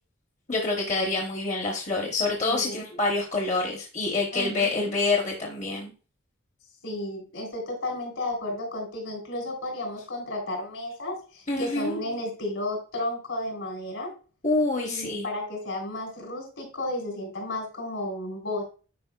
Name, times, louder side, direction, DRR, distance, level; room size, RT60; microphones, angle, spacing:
voice 1, 0.5-5.9 11.5-12.0 14.4-15.2, left 3 dB, 35° left, 0 dB, 0.9 m, -27 dB
voice 2, 2.4-2.8 4.3-4.9 6.8-14.1 14.8-18.6, left 1 dB, 75° left, 1 dB, 3.2 m, -33 dB
9.6 x 5.0 x 2.3 m, 0.36 s
head